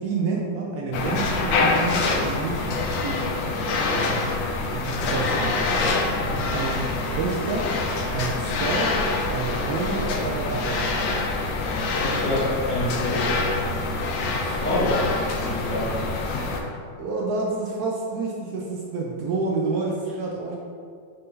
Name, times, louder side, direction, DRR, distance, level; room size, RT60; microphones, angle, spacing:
voice 1, 0.0-3.3 3.9-4.4 4.7-5.7 6.5-7.7 8.1-9.0 9.3-11.0 17.0-20.6, right 3 dB, 70° right, -2 dB, 0.9 m, -29 dB
sound 1, 0.9-16.6, left 3 dB, 70° left, 0.9 m, -25 dB
voice 2, 12.0-13.3 14.2-15.0 15.4-15.9, left 1 dB, 50° left, -9 dB, 1.5 m, -27 dB
5.5 x 2.7 x 3.6 m, 2.2 s
omnidirectional pair, 2.0 m